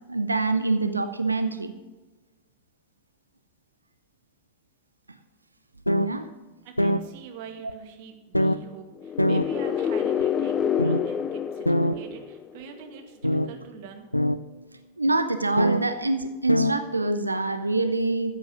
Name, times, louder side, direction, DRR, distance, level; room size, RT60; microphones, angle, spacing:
voice 1, 0.1-1.7 5.9-6.3 15.0-18.4, right 2 dB, 80° right, 9 dB, 0.8 m, -25 dB
sound 1, 5.9-6.1 6.8-7.0 7.7-7.8 8.3-8.6 9.2-9.5 10.2-10.3 10.8-11.0 11.7-12.0 13.2-13.5 14.1-14.4 15.6-15.8 16.2-16.3 16.5-16.7, equal, 90° left, 0.5 m, -22 dB
voice 2, 6.6-14.1, right 7 dB, 50° right, 4 dB, 2.1 m, -44 dB
sound 2, 9.0-12.8, left 8 dB, 25° left, 0.5 m, -27 dB
13.5 x 8.1 x 6.0 m, 1.2 s
figure-of-eight pair, 90°, 0 cm